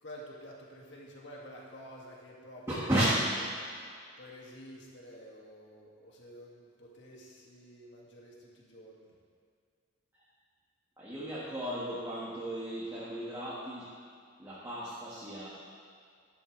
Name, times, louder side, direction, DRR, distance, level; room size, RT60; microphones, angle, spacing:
voice 1, 0.0-2.9 4.2-9.2, equal, 60° left, -3 dB, 2.0 m, -50 dB
voice 2, 2.7-3.2 10.1-10.2 11.0-13.9 14.4-15.5, right 1 dB, 15° right, -9 dB, 1.6 m, -33 dB
12.5 x 12.5 x 3.2 m, 2.1 s
head